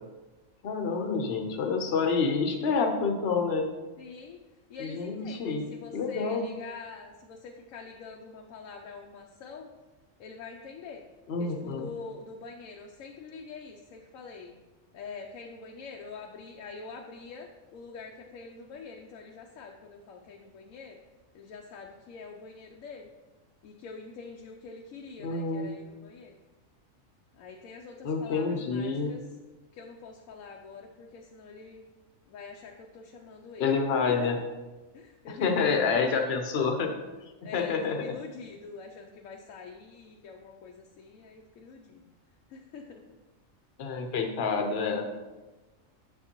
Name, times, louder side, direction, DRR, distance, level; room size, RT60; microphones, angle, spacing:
voice 1, 0.6-3.6 4.8-5.7 5.9-6.4 11.3-11.9 25.2-25.7 28.0-29.1 33.6-34.4 35.4-36.9 37.5-38.0 43.8-45.0, left 5 dB, 55° left, 3 dB, 1.0 m, -28 dB
voice 2, 4.0-4.4 4.7-9.7 10.2-11.0 11.4-14.5 14.9-21.0 21.3-23.1 23.6-26.3 27.4-29.3 29.7-31.9 32.3-33.7 34.1-34.4 34.9-36.2 37.4-42.1 42.5-43.2, left 4 dB, 85° left, 2 dB, 1.0 m, -45 dB
7.3 x 6.9 x 2.9 m, 1.2 s
omnidirectional pair, 1.4 m